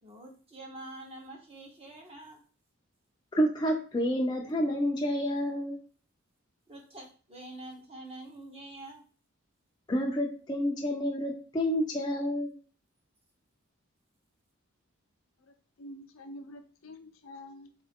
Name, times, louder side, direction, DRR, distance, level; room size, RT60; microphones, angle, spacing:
voice 1, 0.0-2.4 6.7-9.0, right 2 dB, 30° right, 0.8 m, -46 dB
voice 2, 3.3-5.8 9.9-12.5, equal, 20° left, 0.5 m, -29 dB
voice 3, 15.5-17.8, left 1 dB, 75° left, 0.5 m, -47 dB
3.8 x 2.4 x 3.5 m
head